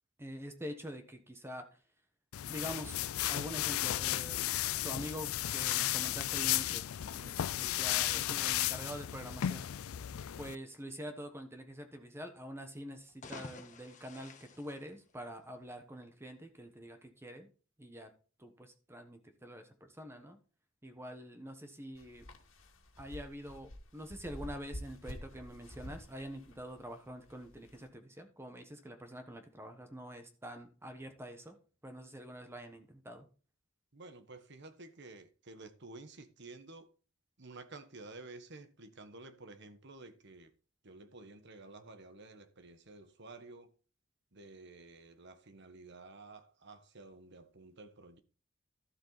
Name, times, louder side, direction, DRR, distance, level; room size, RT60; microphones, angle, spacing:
voice 1, 0.2-1.8 2.5-3.0 3.3-4.5 4.8-6.9 7.1-9.7 10.4-17.5 17.8-18.1 18.4-20.4 20.8-22.3 23.0-31.6 31.8-33.3, equal, 10° right, 1.2 m, -46 dB
sound 1, 2.3-10.6, left 13 dB, 85° left, 0.4 m, -34 dB
sound 2, 13.1-15.6, left 3 dB, 35° left, 1.4 m, -51 dB
sound 3, 21.9-27.9, left 1 dB, 70° left, 2.1 m, -49 dB
voice 2, 33.9-36.9 37.4-40.5 40.8-43.7 44.3-48.2, right 3 dB, 55° right, 1.3 m, -52 dB
12.5 x 7.5 x 4.1 m
head